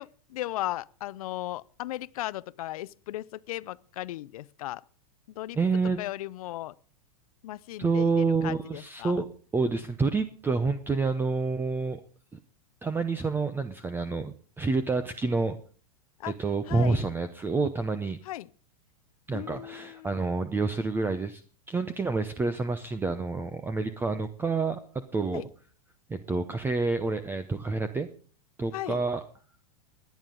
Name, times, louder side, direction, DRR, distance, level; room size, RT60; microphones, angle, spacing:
voice 1, 0.0-4.8 5.4-5.6 6.0-6.7 7.4-9.2 16.2-16.3 16.7-17.0 18.3-18.5 19.3-20.1 25.3-25.4 28.7-29.0, left 15 dB, 70° left, 0.5 m, -36 dB
voice 2, 5.6-6.0 7.8-9.2 9.5-12.0 12.8-15.6 16.4-18.2 19.3-21.4 21.7-24.8 25.1-25.4 26.1-28.1 28.6-29.2, right 4 dB, 10° right, 0.7 m, -28 dB
22.0 x 9.4 x 3.8 m
hypercardioid pair, 125°, 19 cm